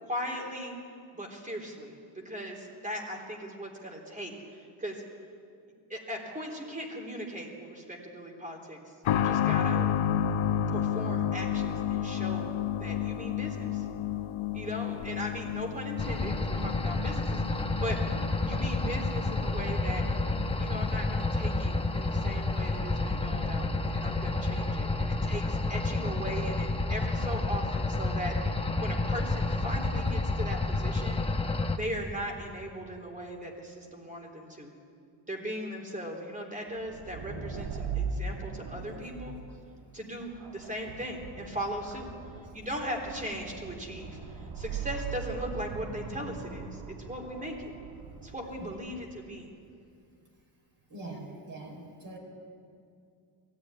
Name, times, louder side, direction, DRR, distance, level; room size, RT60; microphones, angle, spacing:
voice 1, 0.0-0.8 1.1-5.0 5.9-8.8 9.1-9.9 10.5-13.8 14.5-18.0 18.5-20.0 20.6-23.7 23.9-31.2 31.7-34.7 35.3-39.4 39.9-42.1 42.5-47.7 48.2-49.5, equal, 15° right, 1 dB, 3.7 m, -38 dB
sound 1, 9.0-23.5 23.7-23.8 24.8-24.9, left 9 dB, 85° left, 1.1 m, -32 dB
sound 2, 16.0-31.8, left 2 dB, 10° left, 1.1 m, -30 dB
sound 3, 36.8-49.3, right 5 dB, 80° right, 2.1 m, -40 dB
voice 2, 50.9-52.2, right 2 dB, 45° right, -2 dB, 4.7 m, -43 dB
21.5 x 14.5 x 10.0 m, 2.4 s
cardioid pair, 125°, 47 cm